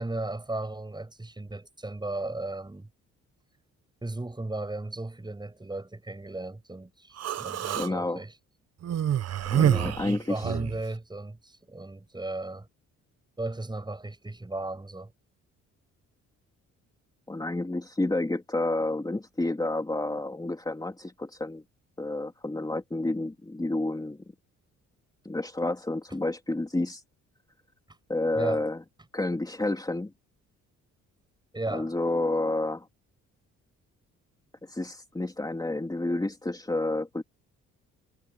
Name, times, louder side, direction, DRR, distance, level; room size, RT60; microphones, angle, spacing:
voice 1, 0.0-2.9 4.0-8.3 9.6-12.7 13.4-15.1 28.3-28.6 31.5-31.9, right 2 dB, 15° right, 7.1 m, -35 dB
Human voice, 7.2-7.9 8.8-10.8, right 10 dB, 55° right, 1.0 m, -27 dB
voice 2, 7.7-8.2 9.5-10.6 17.3-21.6 22.0-24.2 25.2-27.0 28.1-28.8 29.1-30.1 31.7-32.9 34.6-37.2, left 2 dB, 15° left, 3.3 m, -30 dB
cardioid pair, 90°, 30 cm